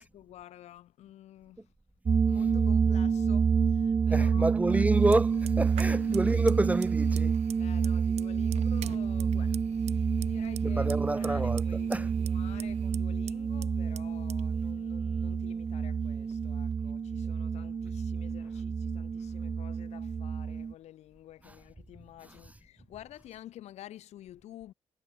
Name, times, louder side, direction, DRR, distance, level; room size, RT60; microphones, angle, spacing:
voice 1, 0.0-1.7 2.1-4.9 5.8-6.3 7.5-24.7, left 13 dB, 90° left, 3.2 m, -50 dB
sound 1, 2.1-20.7, right 6 dB, 35° right, 0.4 m, -28 dB
voice 2, 4.1-7.3 10.6-11.6 11.9-12.1, right 2 dB, 15° right, 0.8 m, -28 dB
Fire, 4.9-16.8, right 12 dB, 80° right, 1.2 m, -48 dB
cardioid pair, 90°, 11 cm